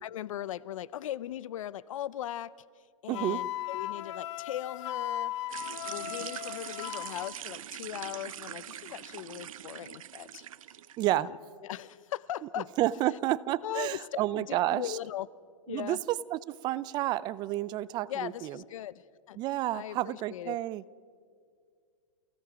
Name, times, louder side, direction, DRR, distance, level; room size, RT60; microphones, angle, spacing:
voice 1, 0.0-2.5 3.0-5.3 5.9-10.5 11.1-11.4 11.6-12.7 13.0-13.2 13.6-15.3 15.7-16.0 18.1-19.4 19.7-20.6, left 12 dB, 75° left, 19 dB, 0.6 m, -39 dB
Wind instrument woodwind instrument, 3.1-7.3, left 12 dB, 60° left, 1.1 m, -37 dB
voice 2, 3.1-3.4 11.0-11.3 12.8-15.0 15.7-16.0 16.3-18.6 19.4-20.8, right 15 dB, 25° right, 20 dB, 0.4 m, -30 dB
sound 1, 5.5-11.1, right 11 dB, 80° right, 0.7 m, -43 dB
28.0 x 16.5 x 6.1 m, 2.2 s
hypercardioid pair, 140°, 17 cm